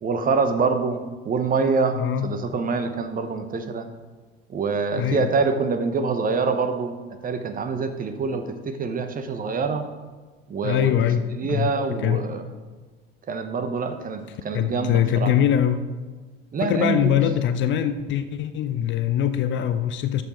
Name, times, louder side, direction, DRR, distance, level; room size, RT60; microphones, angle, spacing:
voice 1, 0.0-3.9 4.5-6.9 7.2-9.9 10.5-10.9 11.4-12.4 13.3-15.3 16.5-17.2, right 4 dB, 25° right, 8 dB, 0.9 m, -25 dB
voice 2, 2.0-2.4 4.9-5.3 10.6-11.7 12.0-12.2 14.5-15.8 16.6-20.2, left 10 dB, 40° left, 11 dB, 0.6 m, -23 dB
13.0 x 4.5 x 4.3 m, 1.3 s
figure-of-eight pair, 70°, 31 cm